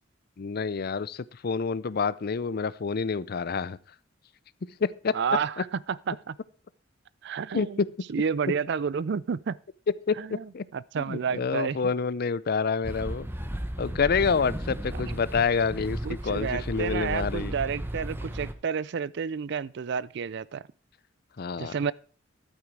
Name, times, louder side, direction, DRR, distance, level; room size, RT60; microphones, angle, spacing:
voice 1, 0.4-3.8 4.6-5.2 5.6-5.7 7.5-7.9 10.1-10.6 11.0-13.3 13.8-17.5 21.4-21.8, left 5 dB, 55° left, 0.5 m, -28 dB
voice 2, 5.1-5.5 6.1-6.3 7.2-7.8 8.1-9.6 10.3-10.4 10.7-11.9 16.0-20.6 21.6-21.9, right 6 dB, 65° right, 0.4 m, -30 dB
sound 1, 12.8-18.5, right 1 dB, 10° right, 0.9 m, -35 dB
11.5 x 9.0 x 4.7 m
head